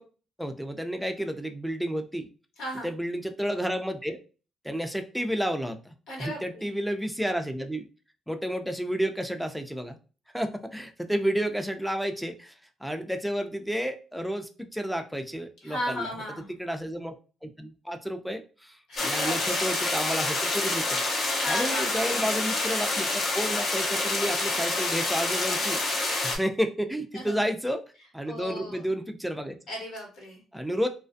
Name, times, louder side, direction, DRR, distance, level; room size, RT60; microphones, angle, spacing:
voice 1, 0.4-2.3 2.8-4.2 4.6-7.9 8.3-10.0 10.3-12.5 12.8-16.1 16.6-17.2 17.4-27.8 28.1-29.6 30.5-30.9, equal, ahead, 6 dB, 0.4 m, -31 dB
voice 2, 2.6-2.9 6.1-6.7 15.6-16.5 18.9-19.7 21.4-22.2 27.1-27.4 28.3-28.9 29.7-30.4, equal, 75° left, -1 dB, 1.3 m, -35 dB
sound 1, 19.0-26.4, left 2 dB, 55° left, 0.7 m, -27 dB
2.4 x 2.2 x 2.5 m, 0.35 s
cardioid pair, 90°, 0 cm